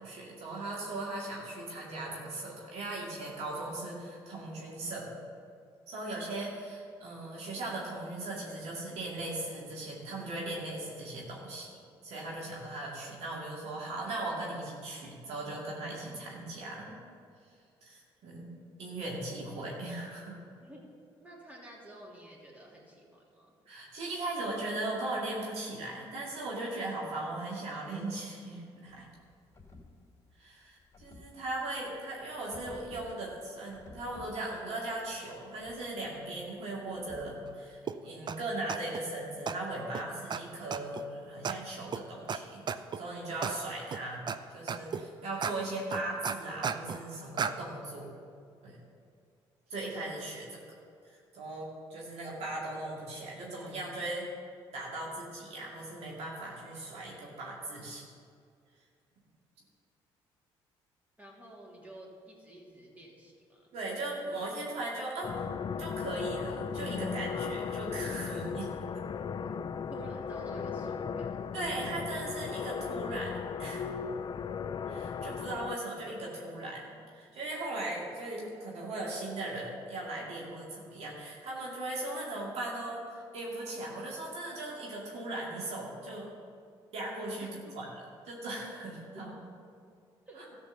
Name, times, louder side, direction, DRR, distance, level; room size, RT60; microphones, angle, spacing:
voice 1, 0.0-5.1 5.9-11.7 12.0-17.0 17.8-18.5 18.8-20.4 23.7-29.1 30.4-44.3 44.5-48.1 48.6-48.8 49.7-50.8 51.1-54.3 54.7-58.0 63.7-65.4 65.8-69.0 71.5-73.9 74.9-76.8 77.1-86.3 86.9-87.9 88.2-89.4, right 2 dB, 70° right, -4 dB, 2.4 m, -38 dB
voice 2, 20.6-20.9 21.2-23.5 30.6-30.7 61.2-63.7 69.4-69.5 69.9-71.4 87.4-87.8 89.3-89.4 90.3-90.5, right 1 dB, 15° right, -3 dB, 3.1 m, -51 dB
sound 1, 28.9-37.7, left 2 dB, 25° left, 2.7 m, -55 dB
sound 2, 37.9-38.0 38.3-38.4 38.7-39.0 39.5-39.6 39.9-40.0 40.3-40.4 40.7-41.0 41.4-41.5 41.9-42.0 42.3-42.4 42.7-43.0 43.4-43.5 43.9-44.4 44.7-45.0 45.4-45.5 45.9-47.0 47.4-47.5, right 6 dB, 40° right, 0.6 m, -33 dB
sound 3, 65.2-75.8, left 6 dB, 45° left, 0.5 m, -36 dB
13.5 x 5.2 x 6.8 m, 2.3 s
supercardioid pair, 65°, 11 cm